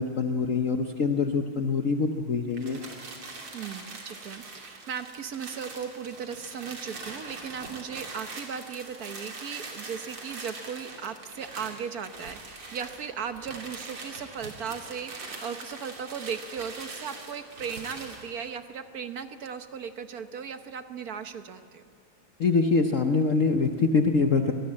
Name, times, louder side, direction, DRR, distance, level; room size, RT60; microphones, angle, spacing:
voice 1, 0.0-2.8 22.4-24.5, left 4 dB, 50° left, 5 dB, 1.0 m, -24 dB
sound 1, 2.5-18.3, right 3 dB, 85° right, 3.9 m, -42 dB
voice 2, 3.5-21.8, right 7 dB, 55° right, 9 dB, 1.2 m, -37 dB
25.0 x 18.5 x 8.6 m, 2.3 s
omnidirectional pair, 2.3 m